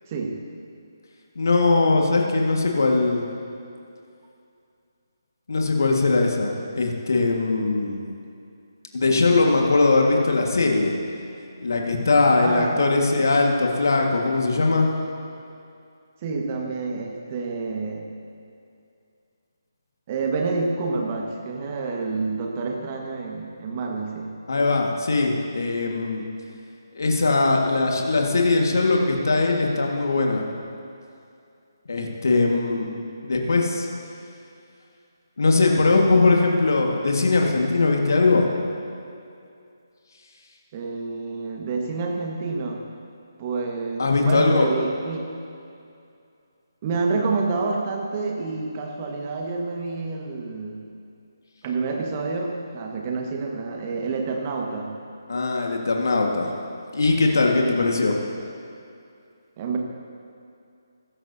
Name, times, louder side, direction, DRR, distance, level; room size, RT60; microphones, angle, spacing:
voice 1, 1.3-3.3 5.5-8.0 8.9-10.9 11.6-14.9 24.5-26.2 26.9-30.4 31.9-32.9 33.2-33.9 35.4-38.4 44.0-44.7 55.3-56.5 56.9-58.2, left 3 dB, 60° left, 1 dB, 1.7 m, -20 dB
voice 2, 12.4-13.4 16.2-18.0 20.1-24.3 40.7-42.8 43.4-45.2 46.8-50.8 51.6-54.9 57.6-57.9 59.6-59.8, right 4 dB, 30° right, 1 dB, 1.5 m, -28 dB
16.0 x 14.5 x 2.8 m, 2.5 s
figure-of-eight pair, 145°, 2 cm